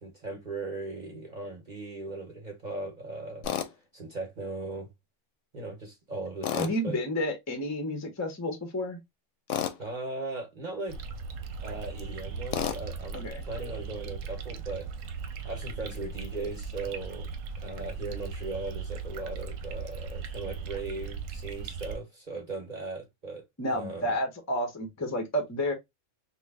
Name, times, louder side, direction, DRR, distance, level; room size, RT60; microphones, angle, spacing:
voice 1, 0.0-3.5 3.9-4.9 5.5-7.0 9.8-11.0 11.6-14.9 15.4-17.3 17.6-23.4 23.7-24.2, right 3 dB, 40° right, 1.0 m, -38 dB
Tools, 3.4-3.7 6.4-6.8 9.5-9.8 12.5-12.8, left 9 dB, 70° left, 0.9 m, -30 dB
voice 2, 6.5-9.0 13.1-13.4 23.6-25.7, left 1 dB, 20° left, 0.5 m, -31 dB
sound 1, 10.9-22.0, right 5 dB, 80° right, 1.0 m, -38 dB
3.1 x 2.3 x 3.4 m
omnidirectional pair, 1.4 m